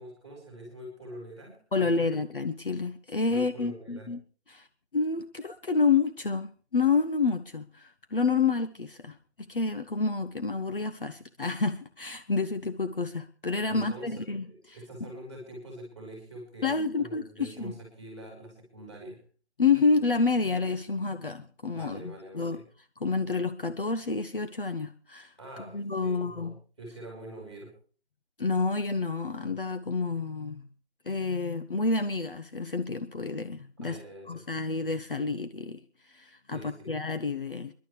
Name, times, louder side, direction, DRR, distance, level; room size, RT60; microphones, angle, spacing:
voice 1, 0.0-2.2 3.3-4.1 13.7-19.2 21.7-22.6 25.4-27.7 33.8-34.4 36.5-36.9, right 1 dB, ahead, -1 dB, 4.0 m, -45 dB
voice 2, 1.7-4.2 4.5-4.7 4.9-9.2 9.5-14.5 16.6-17.7 19.6-22.6 23.0-25.3 25.7-26.5 28.4-30.7 31.1-34.0 34.3-35.8 36.1-37.7, left 4 dB, 55° left, 9 dB, 0.9 m, -29 dB
25.0 x 11.5 x 3.3 m, 0.40 s
figure-of-eight pair, 170°, 33 cm